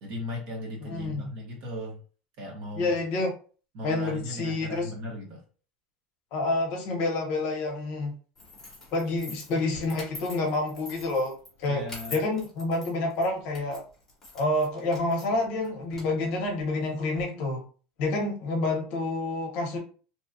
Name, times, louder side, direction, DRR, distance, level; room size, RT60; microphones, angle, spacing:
voice 1, 0.0-2.0 2.4-3.0 3.7-5.4 11.7-12.2, left 1 dB, 40° right, 0 dB, 1.0 m, -37 dB
voice 2, 0.8-1.3 2.8-3.3 3.8-4.9 6.3-8.1 8.9-11.3 11.6-11.8 12.1-13.8 14.3-17.6 18.0-19.8, left 2 dB, 45° left, 1 dB, 0.8 m, -28 dB
sound 1, 8.3-17.2, left 2 dB, 10° left, 0.9 m, -46 dB
2.8 x 2.3 x 2.6 m, 0.38 s
cardioid pair, 180°, 3 cm